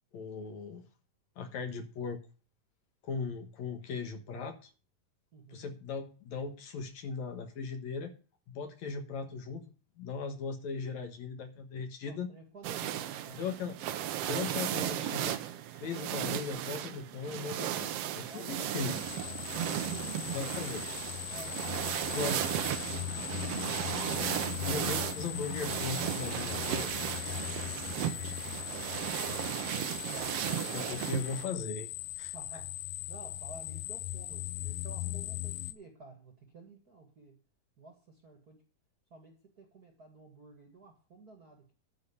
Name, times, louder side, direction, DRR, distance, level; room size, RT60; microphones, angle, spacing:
voice 1, 0.1-0.9 1.4-2.2 3.0-4.7 5.5-8.1 8.5-9.6 10.0-12.3 13.4-13.8 14.3-15.3 15.7-19.1 20.3-21.0 22.1-22.4 24.6-27.1 30.6-31.9 32.2-32.3, left 5 dB, 65° left, 5 dB, 2.5 m, -38 dB
voice 2, 5.3-5.8 12.1-13.5 18.2-18.8 19.5-20.2 21.3-22.6 27.4-27.8 32.3-37.4 37.8-38.6 39.1-41.7, right 3 dB, 40° right, 3 dB, 1.6 m, -53 dB
sound 1, 12.6-31.4, right 11 dB, 80° right, 1.4 m, -35 dB
sound 2, 18.4-35.7, left 16 dB, 80° left, 2.2 m, -39 dB
10.5 x 5.1 x 8.2 m, 0.35 s
omnidirectional pair, 3.7 m